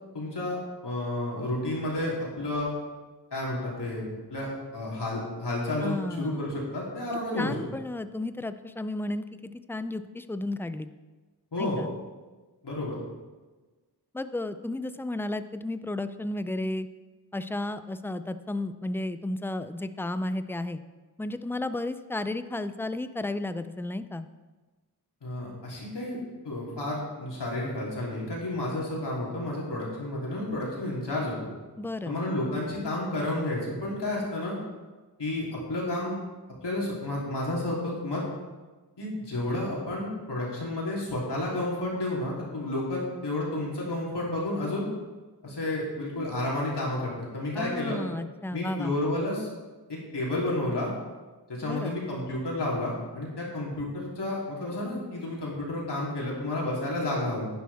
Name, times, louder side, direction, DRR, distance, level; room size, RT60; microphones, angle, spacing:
voice 1, 0.1-0.6 0.8-2.7 3.3-4.0 4.3-7.6 11.5-11.8 12.6-13.0 25.2-26.2 26.4-31.5 32.0-34.5 35.2-36.1 36.6-38.2 39.0-44.8 45.4-48.0 48.5-49.5 49.9-50.9 51.5-57.5, left 1 dB, 85° left, -5 dB, 3.4 m, -31 dB
voice 2, 5.8-6.4 7.3-10.9 11.6-11.9 14.1-16.9 17.3-20.8 21.2-24.3 31.8-32.2 47.5-48.9 51.6-52.0, left 2 dB, 5° left, 11 dB, 0.4 m, -33 dB
11.0 x 10.5 x 3.6 m, 1.3 s
wide cardioid pair, 100°, 40 cm